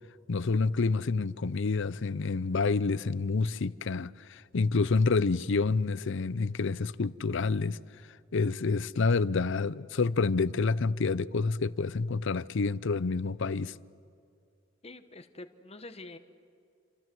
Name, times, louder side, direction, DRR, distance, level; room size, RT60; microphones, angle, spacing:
voice 1, 0.3-7.8 8.3-13.7, left 4 dB, 65° left, 0.6 m, -28 dB
voice 2, 14.8-16.2, left 2 dB, 30° left, 1.2 m, -46 dB
28.0 x 26.5 x 7.8 m
head